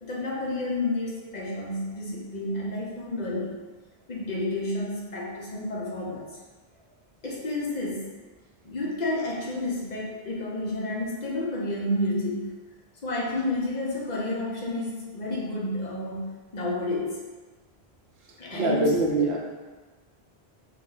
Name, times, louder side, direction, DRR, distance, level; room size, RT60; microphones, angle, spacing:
voice 1, 0.0-3.5 4.1-6.3 7.2-8.1 8.6-12.5 13.0-16.3 16.5-17.2 18.4-19.0, left 2 dB, 50° left, -4 dB, 0.7 m, -30 dB
voice 2, 18.5-19.4, right 2 dB, 75° right, -1 dB, 0.8 m, -23 dB
3.2 x 2.1 x 3.7 m, 1.3 s
omnidirectional pair, 1.1 m